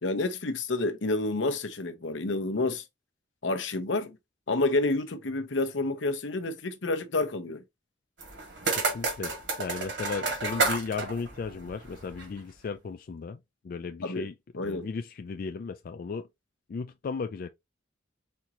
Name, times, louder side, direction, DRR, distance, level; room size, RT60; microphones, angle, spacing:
voice 1, 0.0-2.8 3.4-4.2 4.5-7.6 14.0-14.3 14.5-14.9, left 2 dB, 75° left, 0.9 m, -29 dB
sound 1, 8.2-12.4, right 3 dB, 65° right, 2.0 m, -31 dB
voice 2, 8.8-13.4 13.6-14.3 14.6-16.3 16.7-17.5, left 5 dB, 50° left, 0.3 m, -35 dB
4.5 x 3.7 x 2.9 m
head